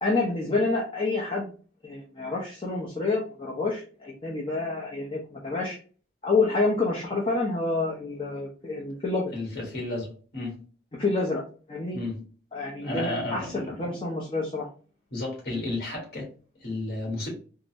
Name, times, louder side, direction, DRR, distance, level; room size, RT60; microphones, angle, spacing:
voice 1, 0.0-1.5 1.8-5.8 6.2-9.3 11.0-11.4 11.7-12.0 12.5-14.7, left 3 dB, 30° left, 0.7 m, -28 dB
voice 2, 9.3-10.6 11.9-12.2 12.8-13.9 15.1-16.3 16.6-17.3, left 2 dB, 60° left, 1.5 m, -32 dB
3.8 x 2.0 x 2.7 m
head